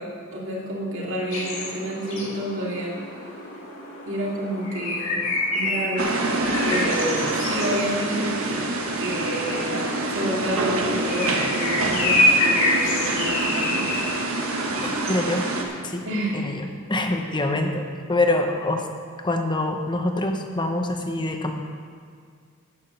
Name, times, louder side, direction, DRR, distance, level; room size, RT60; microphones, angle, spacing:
voice 1, 0.0-3.0 4.0-6.1 6.6-8.7 9.0-9.8 10.1-14.0 16.0-16.4, right 1 dB, 65° right, -4 dB, 2.5 m, -29 dB
sound 1, 1.3-15.3, left 1 dB, 65° left, 2.8 m, -28 dB
sound 2, 6.0-15.6, right 2 dB, 80° right, 1.3 m, -26 dB
voice 2, 14.8-15.5 15.8-16.0 16.3-18.9 19.2-21.5, left 2 dB, 20° left, 4 dB, 0.9 m, -25 dB
9.8 x 7.3 x 6.9 m, 2.1 s
head